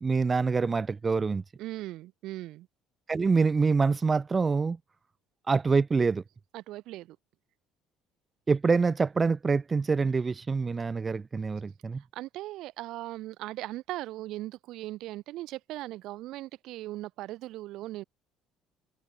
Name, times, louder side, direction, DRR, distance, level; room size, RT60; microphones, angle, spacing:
voice 1, 0.0-1.4 3.1-4.8 5.5-6.2 8.5-12.0, right 4 dB, 30° right, 0.4 m, -25 dB
voice 2, 1.6-2.7 6.5-7.2 12.1-18.0, right 16 dB, 65° right, 0.9 m, -39 dB
hypercardioid pair, 65°, 0 cm